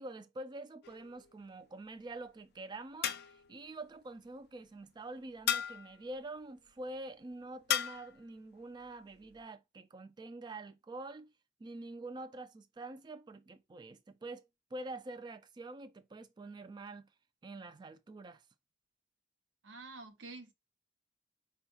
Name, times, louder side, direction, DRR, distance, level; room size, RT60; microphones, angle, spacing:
voice 1, 0.0-11.3 11.6-17.1 17.4-18.4, right 2 dB, 25° right, 0.3 m, -46 dB
sound 1, 0.8-1.4 3.0-3.6 5.5-6.0 7.7-8.2, left 10 dB, 60° left, 0.3 m, -35 dB
voice 2, 19.6-20.5, right 3 dB, 80° right, 0.7 m, -48 dB
4.4 x 2.3 x 2.7 m
head